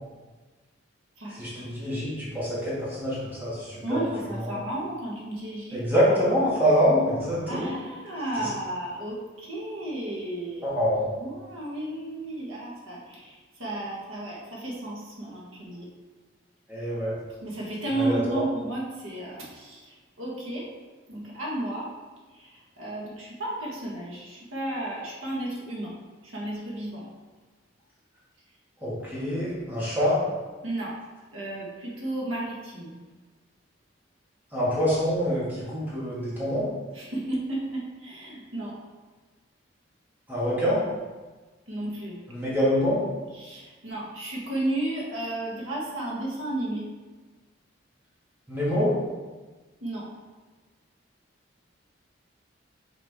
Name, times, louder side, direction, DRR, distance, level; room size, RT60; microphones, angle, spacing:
voice 1, 1.3-4.0 4.4-4.6 5.7-7.8 8.4-8.5 10.6-11.0 16.7-17.1 17.9-18.4 28.8-30.2 34.5-36.7 40.3-40.8 42.3-43.0 48.5-48.9, equal, 10° right, -9 dB, 2.0 m, -25 dB
voice 2, 3.8-5.8 7.5-10.7 11.1-15.9 17.4-20.7 21.1-21.9 22.3-25.9 26.2-27.1 30.6-31.0 31.3-33.0 36.9-38.8 41.7-42.2 43.3-46.9 49.8-50.1, right 1 dB, 90° right, -4 dB, 1.6 m, -33 dB
5.9 x 5.1 x 3.6 m, 1.3 s
head